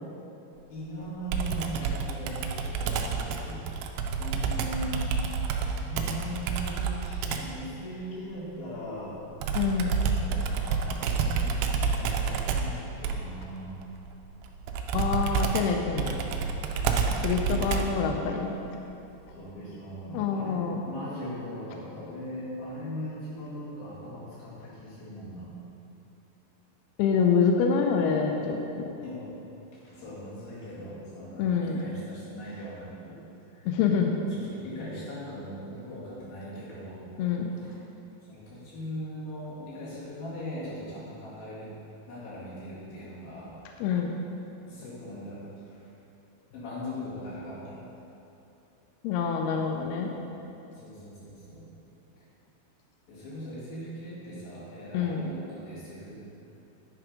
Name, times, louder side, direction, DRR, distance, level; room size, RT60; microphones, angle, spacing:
voice 1, 0.7-9.2 9.7-9.9 10.2-13.9 16.8-17.8 19.3-25.5 29.0-29.3 29.7-33.2 33.5-33.7 34.3-37.1 37.5-37.8 38.3-41.7 42.1-43.6 44.7-45.8 46.5-47.8 50.7-51.7 52.2-52.3 53.1-56.2, equal, 60° left, -9 dB, 3.7 m, -40 dB
Computer keyboard, 1.3-7.6 9.4-18.1, right 5 dB, 85° right, 2.2 m, -29 dB
voice 2, 9.5-9.9 14.9-16.2 17.2-18.5 20.1-20.8 27.0-28.9 31.4-31.8 33.7-34.2 37.2-37.5 43.8-44.1 49.0-50.1 54.9-55.2, left 6 dB, 85° left, 2 dB, 2.3 m, -26 dB
9.8 x 4.6 x 5.0 m, 2.9 s
omnidirectional pair, 5.1 m